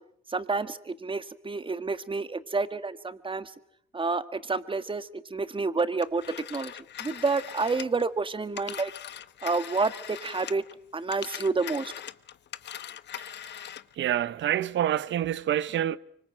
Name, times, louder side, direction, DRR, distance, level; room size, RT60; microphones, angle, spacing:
voice 1, 0.3-3.5 3.9-6.2 6.5-6.7 7.0-8.9 9.4-10.6 10.9-11.9, right 4 dB, 25° right, 1.8 m, -29 dB
Telephone, 6.0-10.7 11.0-14.0, left 10 dB, 60° left, 1.0 m, -41 dB
voice 2, 13.2-13.6 13.9-16.0, right 11 dB, 70° right, 1.0 m, -28 dB
25.0 x 25.0 x 8.9 m
cardioid pair, 90°, 20 cm